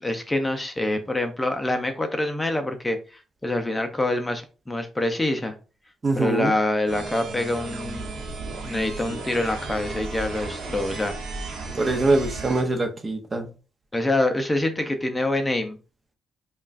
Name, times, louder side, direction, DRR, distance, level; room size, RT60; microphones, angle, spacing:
voice 1, 0.0-5.5 6.2-8.1 8.6-11.2 13.9-15.8, left 1 dB, 15° left, 0.6 m, -26 dB
voice 2, 6.0-6.5 11.7-13.5, right 2 dB, 30° right, 0.8 m, -23 dB
sound 1, 6.9-12.6, right 3 dB, 85° right, 1.1 m, -34 dB
5.1 x 2.4 x 2.5 m
cardioid pair, 90°, 0 cm